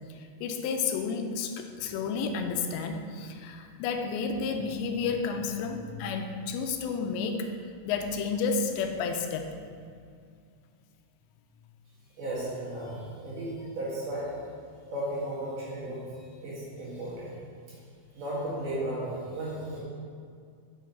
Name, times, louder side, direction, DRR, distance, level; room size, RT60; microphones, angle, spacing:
voice 1, 0.1-7.5 7.9-9.5, left 5 dB, 85° left, 5 dB, 2.8 m, -31 dB
voice 2, 12.2-14.3 14.9-17.4 17.7-17.8 18.1-19.8, right 1 dB, 55° right, -8 dB, 2.8 m, -35 dB
7.2 x 6.1 x 4.1 m, 2.2 s
omnidirectional pair, 5.0 m